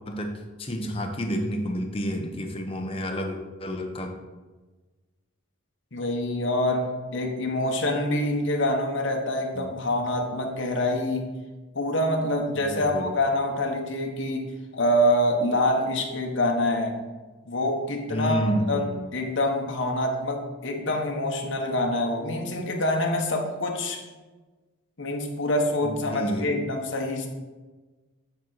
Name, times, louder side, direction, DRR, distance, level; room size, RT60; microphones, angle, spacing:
voice 1, 0.6-4.1 9.5-9.7 12.5-13.1 18.1-19.1 25.8-26.6, equal, 25° left, 3 dB, 0.8 m, -30 dB
voice 2, 5.9-11.3 11.7-17.0 17.4-18.9 19.1-24.0 25.0-27.3, left 1 dB, 55° left, 1 dB, 1.1 m, -26 dB
9.2 x 4.4 x 4.0 m, 1.3 s
head